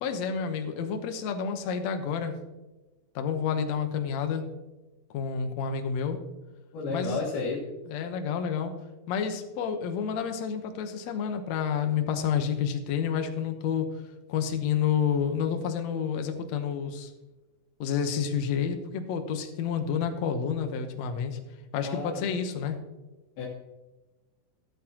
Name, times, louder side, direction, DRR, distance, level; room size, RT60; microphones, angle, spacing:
voice 1, 0.0-2.3 3.2-4.4 5.1-6.2 6.9-7.2 7.9-8.7 9.1-13.9 14.3-17.1 17.8-21.4 21.7-22.8, left 7 dB, 65° left, 6 dB, 1.8 m, -29 dB
voice 2, 6.7-7.6 21.8-22.4 23.4-23.5, left 4 dB, 85° left, -7 dB, 3.6 m, -32 dB
13.0 x 13.0 x 2.9 m, 1.1 s
omnidirectional pair, 4.3 m